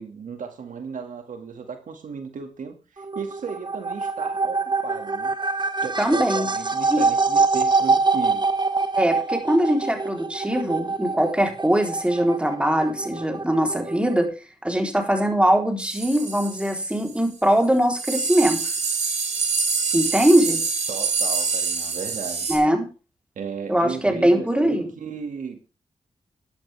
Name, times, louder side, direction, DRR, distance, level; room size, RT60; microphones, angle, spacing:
voice 1, 0.0-5.3 5.8-8.5 20.9-22.5 23.4-25.6, right 6 dB, 80° right, 5 dB, 2.0 m, -35 dB
sound 1, 3.0-14.2, right 4 dB, 35° right, 1.0 m, -25 dB
voice 2, 6.0-6.5 6.9-7.0 9.0-14.3 14.6-18.7 19.9-20.6 22.5-22.9 23.7-24.9, right 1 dB, 10° right, 3 dB, 3.6 m, -21 dB
sound 2, 15.8-17.2 17.6-17.7 17.9-22.6, right 5 dB, 60° right, 4.9 m, -26 dB
14.0 x 10.5 x 3.4 m, 0.31 s
cardioid pair, 70°, 13 cm